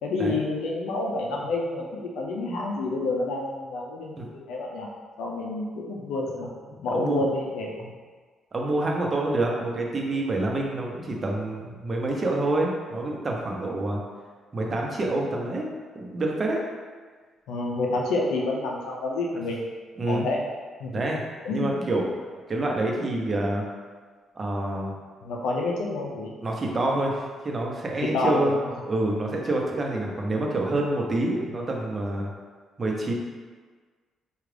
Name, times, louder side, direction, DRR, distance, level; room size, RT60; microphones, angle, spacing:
voice 1, 0.0-4.2 4.5-4.9 5.2-6.5 6.8-7.8 17.5-19.6 20.1-20.4 20.8-20.9 21.4-21.9 25.2-26.4 28.0-28.5, left 2 dB, 85° left, -1 dB, 0.5 m, -28 dB
voice 2, 6.7-7.2 7.8-7.9 8.5-14.0 14.5-15.7 15.9-16.6 19.3-19.5 20.0-20.3 20.9-21.2 21.5-22.1 22.5-23.6 24.4-25.0 26.4-28.5 28.9-32.3 32.8-33.1, right 2 dB, 35° right, -1 dB, 0.8 m, -27 dB
4.7 x 2.4 x 3.3 m, 1.5 s
cardioid pair, 90°, 0 cm